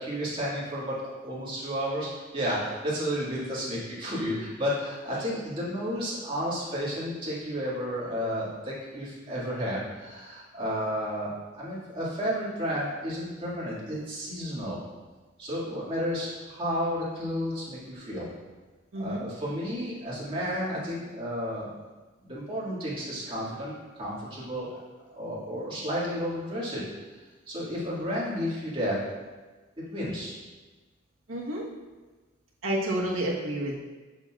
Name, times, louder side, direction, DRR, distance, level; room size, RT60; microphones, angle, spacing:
voice 1, 0.0-14.8 15.4-18.3 19.0-21.7 22.2-24.7 25.1-26.8 27.5-29.0 29.9-30.3, equal, 25° right, -8 dB, 2.0 m, -32 dB
voice 2, 18.9-19.2 31.3-31.6 32.6-33.7, right 1 dB, 90° right, -3 dB, 1.2 m, -29 dB
7.0 x 6.5 x 2.4 m, 1.3 s
head